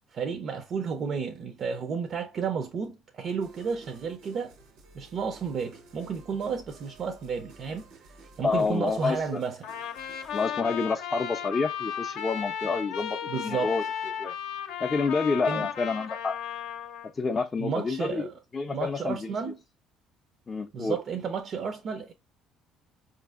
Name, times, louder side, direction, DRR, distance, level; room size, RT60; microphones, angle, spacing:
voice 1, 0.1-4.5 4.9-9.6 13.3-13.7 15.5-15.7 17.6-18.3 18.7-19.5 20.7-22.1, right 6 dB, 55° right, 0.4 m, -32 dB
sound 1, 3.4-10.5, right 3 dB, 85° right, 0.8 m, -53 dB
voice 2, 8.4-9.4 10.3-13.8 14.2-14.4 14.8-16.4 17.1-18.3 18.5-19.4 20.5-21.0, left 4 dB, 30° left, 0.4 m, -28 dB
Trumpet, 9.6-17.1, left 8 dB, 80° left, 0.6 m, -34 dB
4.7 x 2.5 x 2.3 m
supercardioid pair, 85°, 0 cm